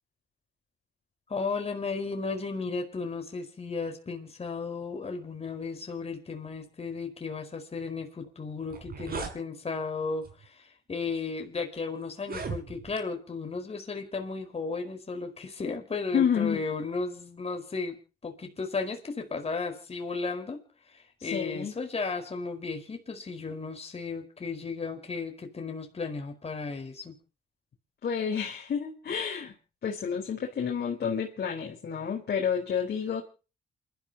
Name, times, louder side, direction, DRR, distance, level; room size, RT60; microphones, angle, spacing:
voice 1, 1.3-18.0 18.2-20.6 20.9-27.2, left 4 dB, 30° left, 4 dB, 4.8 m, -34 dB
sound 1, 8.2-8.3 8.6-9.4 10.2-10.5 11.2-11.3 12.1-13.0, right 5 dB, 50° right, 6.2 m, -37 dB
voice 2, 16.1-16.6 21.2-21.7 28.0-29.5 29.8-33.2, left 7 dB, 55° left, 1 dB, 4.6 m, -29 dB
28.5 x 13.0 x 2.9 m, 0.35 s
cardioid pair, 90°, 20 cm